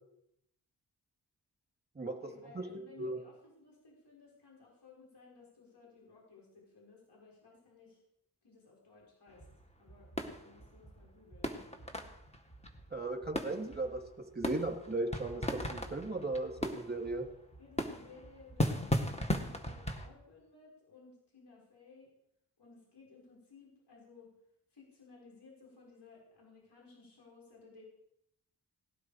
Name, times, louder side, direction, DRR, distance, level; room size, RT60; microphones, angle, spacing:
voice 1, 2.0-8.0 8.4-9.5 9.8-11.6 17.6-22.1 22.6-24.3 24.7-27.8, left 4 dB, 75° left, -3 dB, 5.6 m, -58 dB
voice 2, 2.5-3.2 12.9-14.0 14.3-17.3, right 2 dB, 25° right, 3 dB, 2.9 m, -36 dB
sound 1, 9.3-20.1, left 1 dB, 15° left, 1.9 m, -38 dB
19.0 x 12.0 x 5.1 m, 0.77 s
wide cardioid pair, 75°, 41 cm